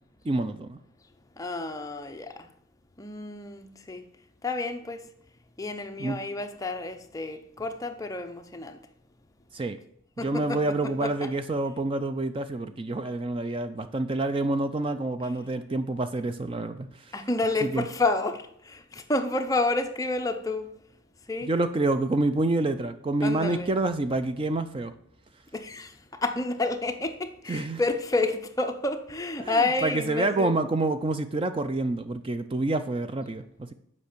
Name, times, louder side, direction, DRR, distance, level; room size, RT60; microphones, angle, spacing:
voice 1, 0.2-0.8 6.0-6.2 9.5-9.8 10.2-17.1 17.6-17.9 21.5-24.9 27.5-27.8 29.4-33.7, right 2 dB, 25° right, 0.4 m, -28 dB
voice 2, 1.4-2.5 3.0-4.0 4.4-5.0 5.6-8.8 10.2-10.6 11.0-11.3 17.1-20.7 21.3-21.5 23.2-23.7 25.5-30.6, left 2 dB, 15° left, 0.6 m, -29 dB
8.0 x 5.4 x 6.7 m
head